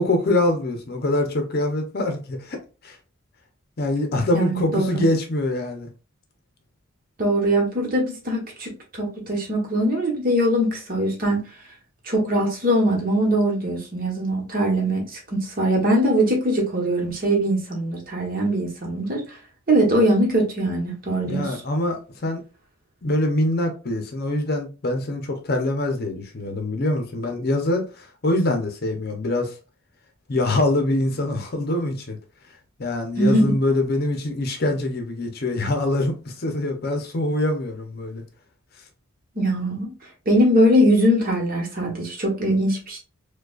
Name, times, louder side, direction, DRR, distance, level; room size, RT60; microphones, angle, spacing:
voice 1, 0.0-2.6 2.8-3.0 3.8-5.9 21.3-22.4 23.0-29.5 30.3-32.2 32.8-38.2, left 1 dB, 50° left, 0.7 m, -24 dB
voice 2, 4.3-5.0 7.2-11.4 12.1-19.2 19.7-21.5 33.2-33.6 39.4-39.8 40.3-43.0, equal, 45° right, 1.2 m, -21 dB
4.8 x 2.3 x 2.4 m
head